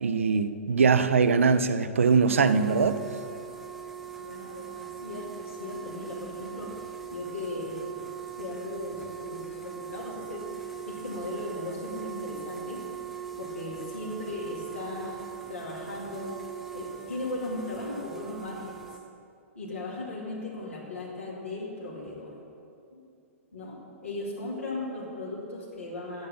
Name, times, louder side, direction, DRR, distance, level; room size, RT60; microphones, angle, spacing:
voice 1, 0.0-3.0, right 5 dB, 65° right, 12 dB, 0.6 m, -22 dB
sound 1, 2.1-19.0, right 9 dB, ahead, 0.7 m, -41 dB
voice 2, 4.2-7.8 8.4-12.8 13.4-15.2 15.5-16.3 16.7-18.8 19.5-22.3 22.9-23.0 23.5-26.3, left 2 dB, 75° left, -6 dB, 2.3 m, -37 dB
10.5 x 7.6 x 7.0 m, 2.7 s
figure-of-eight pair, 105°, 7 cm